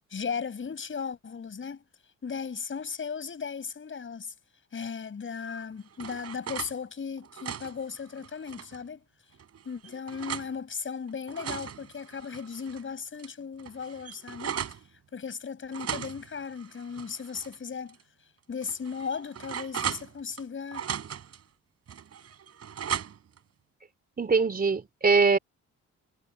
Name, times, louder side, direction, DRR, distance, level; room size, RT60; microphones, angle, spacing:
voice 1, 0.1-1.8 2.2-4.3 4.7-9.0 9.7-14.8 15.1-18.0 18.5-20.9, left 6 dB, 40° left, 7.0 m, -36 dB
sound 1, 5.5-6.7 7.2-8.8 9.4-10.5 11.1-12.8 13.2-13.3 13.6-14.8 15.7-17.6 17.9-18.0 18.6-20.4 20.7-21.4 21.9-23.4, right 8 dB, 55° right, 3.9 m, -37 dB
voice 2, 24.2-25.4, right 4 dB, 30° right, 3.1 m, -22 dB
cardioid pair, 90°, 30 cm